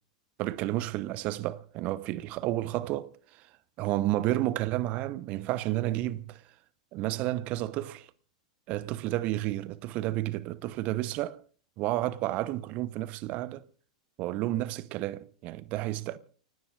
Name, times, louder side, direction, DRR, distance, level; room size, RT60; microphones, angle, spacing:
voice 1, 0.4-3.5 3.8-6.4 6.9-8.1 8.7-11.4 11.8-13.6 14.2-16.2, right 16 dB, 40° right, 1.0 m, -31 dB
29.5 x 17.0 x 2.5 m
figure-of-eight pair, 90°, 4 cm